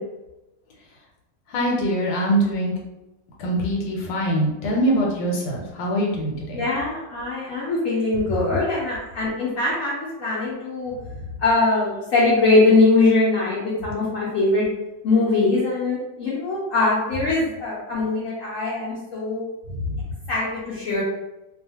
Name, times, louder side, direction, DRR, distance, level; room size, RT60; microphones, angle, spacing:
voice 1, 1.5-2.7 3.4-6.6 19.9-20.0, right 1 dB, 90° left, -2 dB, 1.3 m, -23 dB
voice 2, 6.5-10.9 11.4-14.6 15.0-19.4 20.3-21.0, left 3 dB, 60° left, -6 dB, 0.9 m, -21 dB
2.7 x 2.3 x 2.8 m, 0.97 s
omnidirectional pair, 1.9 m